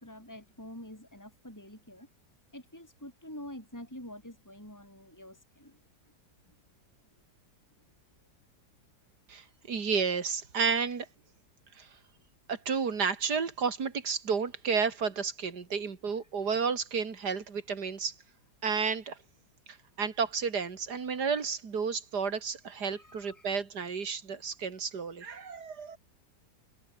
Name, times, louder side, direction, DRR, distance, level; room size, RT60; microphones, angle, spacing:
voice 1, 0.0-2.1 2.5-5.8 6.5-6.6 22.8-23.5, left 1 dB, 10° left, 6.3 m, -47 dB
voice 2, 9.3-11.1 11.8-11.9 12.5-18.1 18.6-19.2 19.7-26.0, right 5 dB, 65° right, 2.9 m, -32 dB
omnidirectional pair, 1.9 m